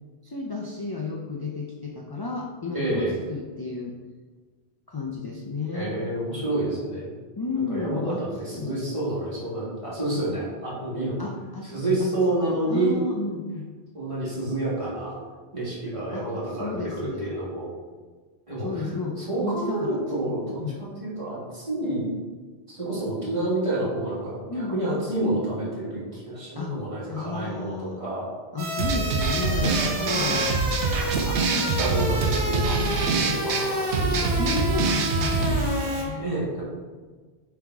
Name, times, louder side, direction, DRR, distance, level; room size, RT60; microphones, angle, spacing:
voice 1, 0.2-4.0 4.9-6.0 7.4-8.2 8.5-8.8 11.2-12.1 12.5-13.7 16.1-17.3 18.6-20.8 24.5-25.0 26.5-26.8 27.1-28.0 28.5-30.5 31.3-31.8 34.1-36.2, left 4 dB, 30° left, 0 dB, 0.4 m, -32 dB
voice 2, 2.7-3.1 5.7-7.1 7.7-11.3 11.6-12.9 13.9-15.2 15.5-17.7 18.5-18.9 19.3-22.1 22.7-28.3 29.6-30.3 31.2-34.3 36.1-36.6, right 1 dB, 30° right, -8 dB, 2.2 m, -29 dB
sound 1, 28.6-36.0, right 1 dB, 45° right, 1.3 m, -30 dB
sound 2, 28.8-35.6, right 4 dB, 85° right, 0.9 m, -25 dB
7.4 x 3.6 x 4.7 m, 1.4 s
omnidirectional pair, 1.1 m